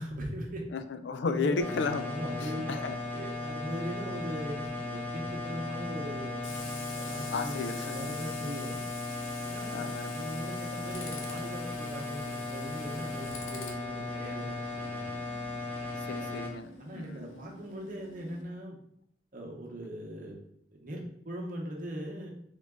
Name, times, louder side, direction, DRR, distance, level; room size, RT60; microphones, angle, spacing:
voice 1, 0.0-0.6 1.2-1.7 2.1-2.8 3.1-6.4 6.9-8.8 9.4-15.1 16.1-16.3 16.8-18.8 19.3-20.5 20.7-22.3, equal, 45° right, 0 dB, 0.9 m, -39 dB
voice 2, 0.7-3.0 7.3-8.2 9.7-10.3 16.0-17.3, left 4 dB, 60° left, 10 dB, 0.4 m, -34 dB
sound 1, 1.6-16.5, left 2 dB, 10° left, 0.7 m, -37 dB
Tools, 4.1-18.4, left 3 dB, 85° left, 0.8 m, -47 dB
3.8 x 3.6 x 3.6 m, 0.70 s
head